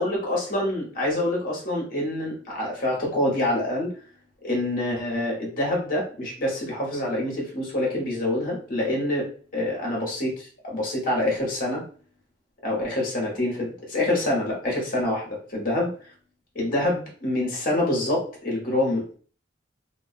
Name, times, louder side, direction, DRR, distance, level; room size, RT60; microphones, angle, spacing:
voice 1, 0.0-3.9 4.4-9.3 9.5-11.8 12.6-15.9 16.5-19.2, left 1 dB, 50° left, -2 dB, 1.0 m, -26 dB
2.3 x 2.2 x 2.5 m, 0.41 s
head